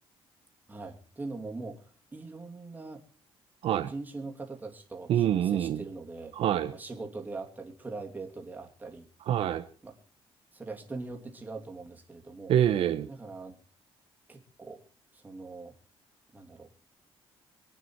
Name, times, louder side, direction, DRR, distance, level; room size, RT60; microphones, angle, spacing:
voice 1, 0.7-3.0 3.9-6.3 6.7-9.1 9.8-10.0 10.5-12.5 13.1-13.6 14.3-14.8 15.1-15.7 16.3-16.7, right 3 dB, 15° right, 2 dB, 2.6 m, -41 dB
voice 2, 5.1-5.8 6.4-6.7 9.3-9.6 12.5-13.1, right 10 dB, 70° right, 9 dB, 0.9 m, -25 dB
25.5 x 9.3 x 4.6 m, 0.40 s
cardioid pair, 140°, 10 cm